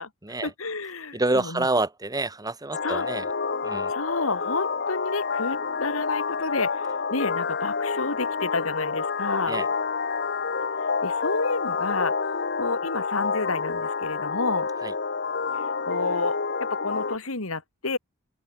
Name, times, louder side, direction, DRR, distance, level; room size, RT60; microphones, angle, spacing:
voice 1, 0.4-1.7 2.8-3.1 3.9-6.8 7.1-9.6 11.0-12.1 12.6-14.7 15.5-16.4 16.7-18.0, left 3 dB, 80° left, 3.0 m, -30 dB
voice 2, 1.1-3.3 3.6-3.9 9.5-9.7 14.8-14.9, right 2 dB, 20° right, 2.0 m, -27 dB
sound 1, 2.7-17.2, left 5 dB, 55° left, 1.7 m, -28 dB
open air
head